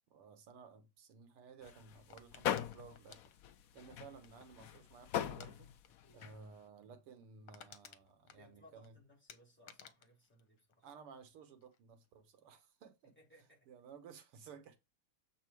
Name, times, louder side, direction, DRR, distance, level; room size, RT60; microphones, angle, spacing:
voice 1, 0.1-3.3 3.7-5.7 6.1-9.0 10.8-13.1 13.7-14.8, right 6 dB, 85° right, 2.2 m, -56 dB
sound 1, 1.6-6.4, left 10 dB, 90° left, 0.7 m, -41 dB
sound 2, 2.1-4.7 5.3-5.5 5.8-6.1 6.3-6.4 6.9-7.0 7.2-8.9 9.3-11.3 11.6-12.1, left 8 dB, 70° left, 1.8 m, -58 dB
voice 2, 6.0-6.4 8.3-10.9 13.0-13.7, left 1 dB, 5° left, 4.6 m, -64 dB
7.8 x 4.6 x 4.5 m
omnidirectional pair, 2.4 m